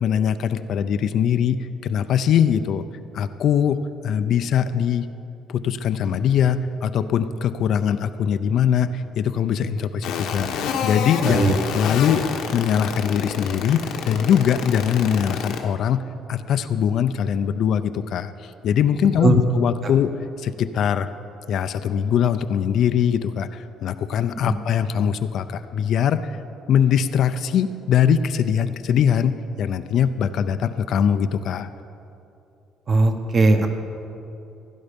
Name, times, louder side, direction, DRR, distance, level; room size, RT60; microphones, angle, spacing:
voice 1, 0.0-2.8 3.1-5.1 5.5-10.5 10.8-11.4 11.7-12.2 12.5-16.0 16.3-20.1 20.4-21.1 21.5-26.4 26.7-29.3 29.6-31.7, left 8 dB, 55° left, 11 dB, 0.5 m, -21 dB
sound 1, 10.0-15.6, left 7 dB, 90° left, 1.3 m, -27 dB
voice 2, 32.9-33.7, right 3 dB, 30° right, 6 dB, 1.1 m, -18 dB
16.0 x 11.0 x 5.2 m, 2.7 s
cardioid pair, 155°, 0 cm